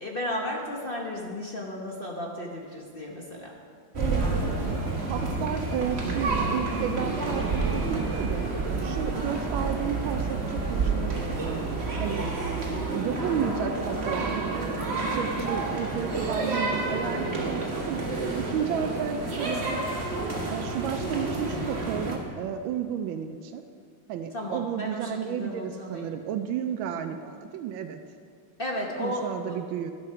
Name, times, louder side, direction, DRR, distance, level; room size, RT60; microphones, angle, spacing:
voice 1, 0.0-3.5 24.3-26.1 28.6-29.4, left 1 dB, 40° left, -1 dB, 0.9 m, -34 dB
sound 1, 3.9-22.2, right 3 dB, 35° right, 1.5 m, -29 dB
voice 2, 5.1-8.4 8.8-11.6 12.0-12.3 12.9-14.6 15.0-18.0 18.4-19.8 20.5-23.6 24.1-28.0 29.0-29.9, right 8 dB, 80° right, 8 dB, 1.3 m, -32 dB
11.5 x 7.9 x 5.7 m, 2.2 s
omnidirectional pair, 2.2 m